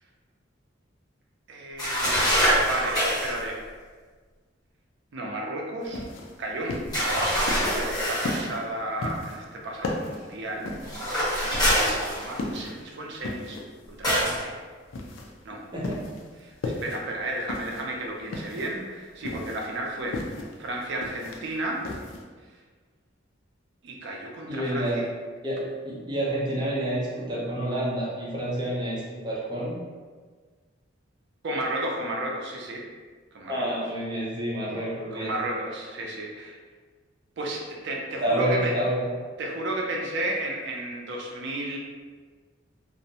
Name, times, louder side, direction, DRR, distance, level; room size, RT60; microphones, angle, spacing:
voice 1, 1.5-2.3 2.7-3.7 5.1-6.0 6.4-6.8 7.0-10.7 11.3-13.6 13.9-14.6 15.4-15.6 16.4-20.2 20.6-21.9 23.8-25.0 31.4-32.9 33.3-33.7 34.8-36.6 37.4-38.8 39.4-41.8, right 1 dB, 60° right, 0 dB, 0.4 m, -33 dB
sound 1, 1.8-3.4 6.9-8.5 10.8-12.6 14.0-14.4, equal, 20° left, 1.1 m, -24 dB
sound 2, 5.8-22.2, left 2 dB, 75° left, 0.4 m, -36 dB
voice 2, 24.5-25.1 25.4-29.7 33.5-35.3 38.2-39.1, right 1 dB, 25° right, -6 dB, 0.6 m, -28 dB
2.5 x 2.1 x 2.7 m, 1.5 s
head